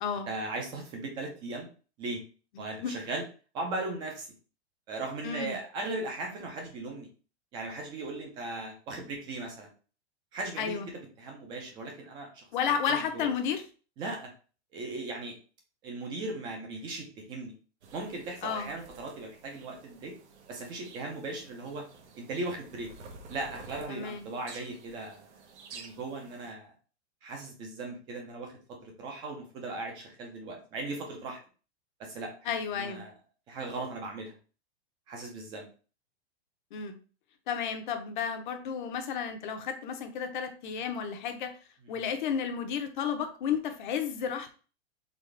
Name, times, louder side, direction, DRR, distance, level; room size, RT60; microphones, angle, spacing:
voice 1, 0.3-1.7 2.0-2.2 2.6-3.2 3.5-4.3 4.9-7.1 7.5-9.7 10.3-10.8 11.2-12.4 12.8-13.3 14.0-14.3 14.7-15.3 15.8-17.5 17.9-20.1 20.5-21.8 22.1-22.9 23.3-25.3 25.7-26.7 27.2-28.5 28.8-31.4 32.0-32.3 32.7-33.1 33.5-34.3 35.1-35.6 41.9-42.1, right 2 dB, 15° right, 1 dB, 0.5 m, -38 dB
voice 2, 2.6-2.9 5.2-5.6 10.6-10.9 12.5-13.6 18.4-18.7 23.9-24.2 32.4-33.0 36.7-37.0 37.5-41.5 41.9-44.5, left 7 dB, 45° left, 7 dB, 0.8 m, -32 dB
sound 1, 17.8-26.5, right 4 dB, 80° right, 1.1 m, -51 dB
4.1 x 3.4 x 3.2 m, 0.37 s
supercardioid pair, 170°, 34 cm